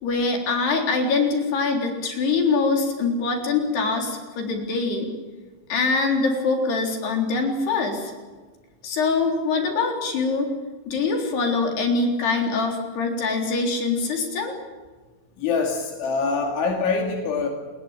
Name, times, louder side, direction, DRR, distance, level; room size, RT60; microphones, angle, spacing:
voice 1, 0.0-5.1 5.7-8.1 8.8-10.5 10.9-14.5, left 4 dB, 60° left, 2 dB, 5.6 m, -23 dB
voice 2, 15.4-17.5, left 4 dB, 80° left, 2 dB, 4.9 m, -24 dB
29.5 x 20.0 x 8.9 m, 1.4 s
omnidirectional pair, 5.4 m